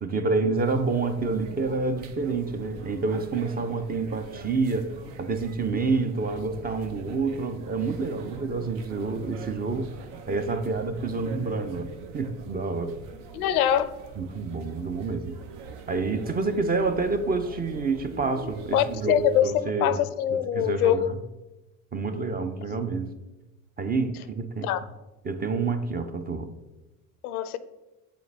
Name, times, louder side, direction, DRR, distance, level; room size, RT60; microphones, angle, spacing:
voice 1, 0.0-4.9 5.2-9.9 10.3-11.9 12.1-13.0 14.2-15.4 15.9-20.0 20.3-21.2 21.9-23.1 23.8-24.7 25.2-26.5, right 4 dB, 20° right, 9 dB, 0.5 m, -28 dB
sound 1, 0.5-19.4, right 5 dB, 65° right, 0.8 m, -43 dB
voice 2, 13.3-13.9 18.7-21.1 22.7-22.8 24.6-24.8 27.2-27.6, left 10 dB, 85° left, 14 dB, 0.5 m, -24 dB
6.9 x 4.2 x 3.3 m, 1.1 s
hypercardioid pair, 75°, 43 cm